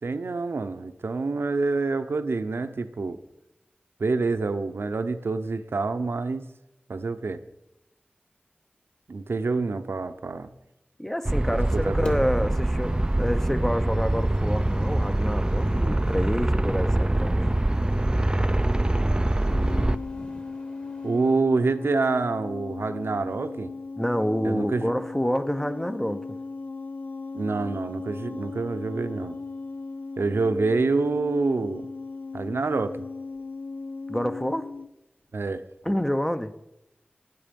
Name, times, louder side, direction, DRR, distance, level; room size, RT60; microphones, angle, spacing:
voice 1, 0.0-3.2 4.0-6.5 6.9-7.4 9.1-10.5 11.5-12.2 21.0-23.7 24.4-24.9 27.3-29.4 30.2-31.8 32.3-33.1 35.3-35.6, right 3 dB, 85° right, 0.8 m, -27 dB
voice 2, 11.0-17.6 24.0-26.2 34.1-34.7 35.8-36.5, equal, 10° left, 0.7 m, -28 dB
sound 1, 11.2-20.0, right 1 dB, 20° right, 0.4 m, -24 dB
sound 2, 12.1-21.4, left 1 dB, 30° left, 2.7 m, -40 dB
sound 3, 19.5-34.9, left 4 dB, 55° left, 0.7 m, -37 dB
15.0 x 10.5 x 5.2 m
wide cardioid pair, 70°, 4 cm